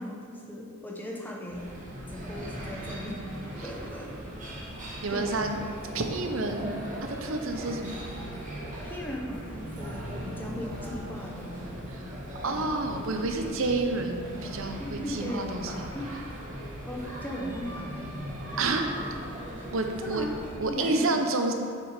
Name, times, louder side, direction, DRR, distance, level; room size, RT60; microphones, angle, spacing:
voice 1, 0.0-1.7 2.1-3.3 3.6-4.1 5.1-5.5 8.8-11.8 12.4-12.7 13.4-13.5 14.8-16.1 16.9-18.1 18.5-19.1 19.6-19.7 20.0-20.3 20.7-21.2, left 1 dB, 10° left, -2 dB, 0.9 m, -38 dB
sound 1, 1.5-20.5, right 1 dB, 35° right, 1.6 m, -39 dB
voice 2, 5.0-5.6 5.9-8.0 11.9-12.1 12.4-15.9 18.6-18.9 19.2-19.3 19.7-20.2 20.6-21.5, right 3 dB, 65° right, 5 dB, 0.8 m, -29 dB
sound 2, 9.6-14.0, equal, 35° left, 1.6 m, -44 dB
7.7 x 6.0 x 5.0 m, 2.1 s
head